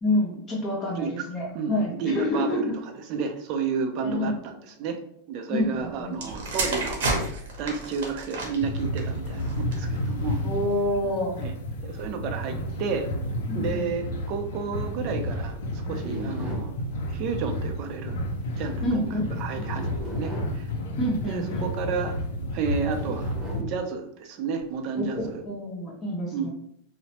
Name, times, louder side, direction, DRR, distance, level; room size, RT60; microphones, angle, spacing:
voice 1, 0.0-2.6 4.0-4.3 5.5-5.7 6.0-6.1 10.4-11.3 13.5-13.9 18.8-19.2 21.0-21.7 25.5-26.5, left 1 dB, 25° left, -3 dB, 1.0 m, -27 dB
voice 2, 1.5-5.0 5.3-7.0 7.6-10.4 11.4-11.5 11.8-13.1 13.5-16.7 17.1-18.2 18.6-20.7 21.3-22.2 22.5-25.4 26.3-26.5, right 5 dB, 50° right, 6 dB, 0.4 m, -31 dB
sound 1, 6.1-10.0 10.7-11.0, right 2 dB, 75° right, 0.8 m, -31 dB
sound 2, 8.6-23.6, equal, 75° left, 0.5 m, -31 dB
sound 3, 15.9-16.7 18.4-18.7 19.7-20.6 21.2-21.9 22.9-23.7 24.6-25.4, equal, 20° right, 0.8 m, -37 dB
2.9 x 2.0 x 2.9 m, 0.71 s
supercardioid pair, 125°, 0 cm